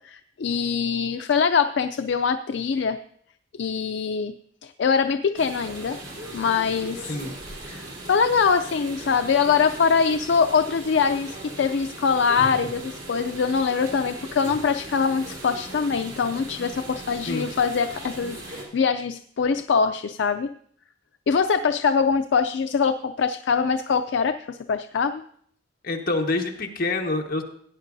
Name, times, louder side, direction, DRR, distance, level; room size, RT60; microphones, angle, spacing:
voice 1, 0.0-3.0 3.6-4.3 4.6-6.0 6.3-7.2 7.7-20.5 21.3-25.2, left 5 dB, 70° left, 9 dB, 0.4 m, -23 dB
sound 1, 5.4-18.7, right 1 dB, 75° right, 3.4 m, -39 dB
voice 2, 25.8-27.4, left 2 dB, 55° left, 1 dB, 1.3 m, -26 dB
17.0 x 9.6 x 2.6 m, 0.62 s
head